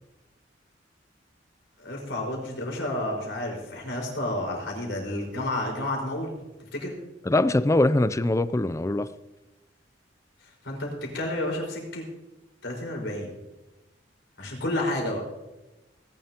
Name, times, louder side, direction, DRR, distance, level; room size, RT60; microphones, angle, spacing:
voice 1, 1.8-6.3 6.7-6.9 10.6-12.0 12.6-13.3 14.4-15.2, left 1 dB, 70° left, 0 dB, 4.9 m, -30 dB
voice 2, 7.2-9.1, left 2 dB, 15° left, 14 dB, 0.4 m, -22 dB
19.5 x 11.0 x 2.9 m, 1.0 s
head